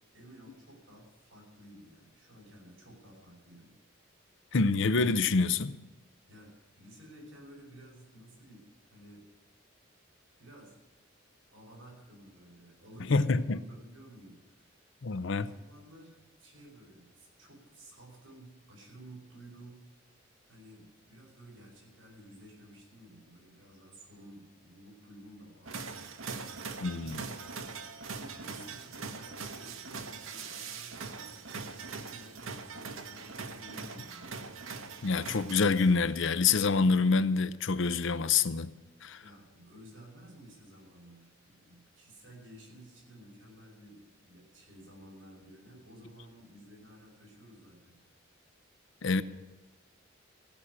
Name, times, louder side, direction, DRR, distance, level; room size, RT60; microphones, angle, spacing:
voice 1, 0.1-3.7 6.3-9.2 10.4-10.7 11.5-14.9 15.3-19.9 20.5-26.7 27.0-27.4 28.1-31.4 31.9-34.4 39.2-48.2, right 1 dB, 70° right, 5.7 m, -53 dB
voice 2, 4.5-5.7 13.1-13.6 15.0-15.5 26.8-27.2 35.0-38.7 39.0-39.2 49.0-49.2, left 4 dB, 65° left, 0.6 m, -26 dB
sound 1, 25.7-36.1, right 4 dB, 85° right, 1.1 m, -42 dB
15.5 x 6.2 x 9.8 m
head